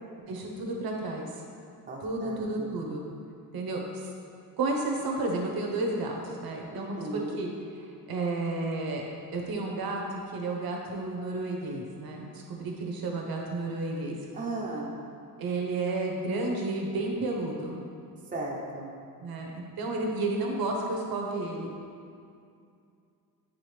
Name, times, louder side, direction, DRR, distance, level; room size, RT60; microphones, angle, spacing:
voice 1, 0.3-1.3 2.0-3.0 3.5-4.1 4.6-7.5 8.1-10.0 10.3-14.2 15.4-17.8 19.2-21.7, right 2 dB, 85° right, 0 dB, 1.0 m, -32 dB
voice 2, 1.9-2.7 6.7-7.4 14.3-14.9 18.3-18.9, right 2 dB, 20° right, -3 dB, 0.7 m, -36 dB
8.8 x 3.7 x 3.3 m, 2.4 s
wide cardioid pair, 175°, 35 cm